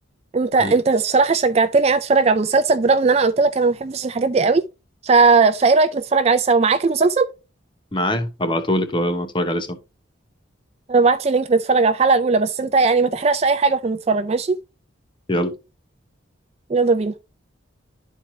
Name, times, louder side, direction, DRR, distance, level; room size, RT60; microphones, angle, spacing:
voice 1, 0.3-4.6 5.0-7.3 10.9-14.6 16.7-17.1, right 4 dB, 30° right, 0.4 m, -18 dB
voice 2, 7.9-9.8 15.3-15.6, left 1 dB, 25° left, 0.9 m, -23 dB
11.5 x 4.6 x 2.7 m
head